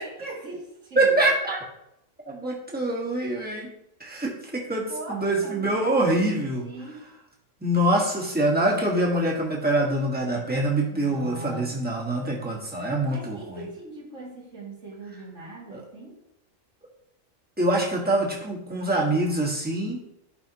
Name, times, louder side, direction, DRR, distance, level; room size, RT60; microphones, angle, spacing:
voice 1, 0.0-1.2 4.9-6.3 6.6-7.0 10.9-11.8 12.2-12.5 13.1-16.2, right 2 dB, 70° right, -5 dB, 2.6 m, -40 dB
voice 2, 1.0-1.6 2.3-3.7 4.0-6.6 7.6-13.6 15.7-15.8 17.6-20.0, right 1 dB, 5° right, -3 dB, 1.5 m, -25 dB
10.0 x 5.5 x 2.9 m, 0.81 s
omnidirectional pair, 1.4 m